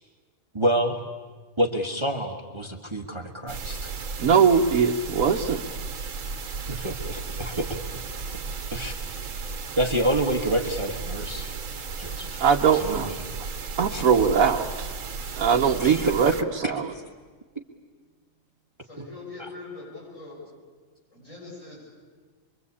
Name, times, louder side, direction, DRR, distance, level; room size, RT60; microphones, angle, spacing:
voice 1, 0.5-1.0 1.6-3.9 6.7-7.8 8.7-8.9 9.8-11.5 12.0-12.4 12.7-13.1 13.9-14.0 15.8-16.1 16.6-17.0 19.0-19.1 19.4-19.5, right 1 dB, 20° right, 4 dB, 1.5 m, -28 dB
sound 1, 3.5-16.4, right 4 dB, 65° right, 1.5 m, -34 dB
voice 2, 4.2-5.6 12.4-13.1 13.8-14.9 15.4-16.9, right 6 dB, 85° right, 1 dB, 1.4 m, -21 dB
voice 3, 18.9-20.4 21.1-21.9, left 3 dB, 70° left, -5 dB, 8.0 m, -42 dB
26.5 x 23.0 x 8.5 m, 1.5 s
omnidirectional pair, 1.4 m